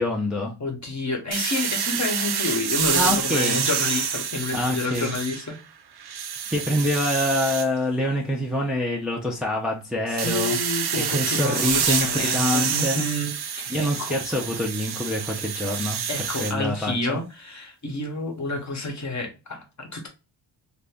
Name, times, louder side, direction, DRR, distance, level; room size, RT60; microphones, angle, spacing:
voice 1, 0.0-0.5 2.9-3.7 4.5-5.2 6.5-10.6 11.1-13.1 13.7-16.0 16.4-17.2, left 1 dB, ahead, 0.5 m, -26 dB
voice 2, 0.6-5.6 10.1-14.2 16.1-20.1, left 2 dB, 35° left, 0.9 m, -29 dB
sound 1, 1.3-5.6 6.0-7.7 10.2-16.5, right 8 dB, 55° right, 0.5 m, -27 dB
2.7 x 2.6 x 3.3 m
wide cardioid pair, 130°, 48 cm